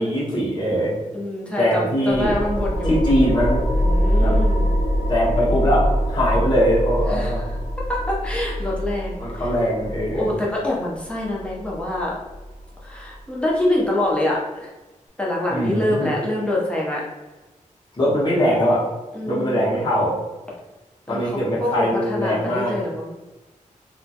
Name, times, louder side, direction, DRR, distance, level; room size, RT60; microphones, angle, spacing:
voice 1, 0.0-0.9 1.6-2.4 2.8-3.6 4.2-4.4 5.1-7.5 9.2-10.3 15.5-16.1 18.0-18.8 19.2-20.1 21.1-22.8, equal, 35° left, -7 dB, 0.9 m, -21 dB
voice 2, 1.1-3.0 3.8-4.7 7.1-7.3 7.9-9.1 10.1-12.1 12.8-14.7 15.2-17.0 19.1-19.7 21.1-23.1, left 1 dB, 10° left, -4 dB, 0.6 m, -25 dB
sound 1, 2.1-13.2, equal, 80° left, 0.5 m, -24 dB
2.8 x 2.2 x 2.8 m, 1.1 s
wide cardioid pair, 170°, 13 cm